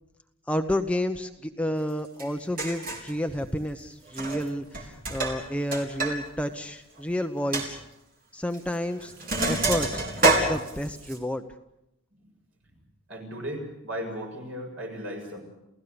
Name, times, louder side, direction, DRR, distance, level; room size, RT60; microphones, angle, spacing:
voice 1, 0.5-7.8 8.3-9.1 9.5-11.4, left 1 dB, 5° left, 6 dB, 0.8 m, -30 dB
Sink (filling or washing), 2.2-2.3 2.6-3.1 4.1-4.5 4.7-6.1 6.4-6.5 7.0-7.1 7.5-7.7 8.5-8.7 9.0-11.2, right 2 dB, 40° right, 3.9 m, -27 dB
voice 2, 13.1-15.4, equal, 70° right, 1 dB, 7.1 m, -36 dB
29.0 x 16.5 x 6.9 m, 0.88 s
head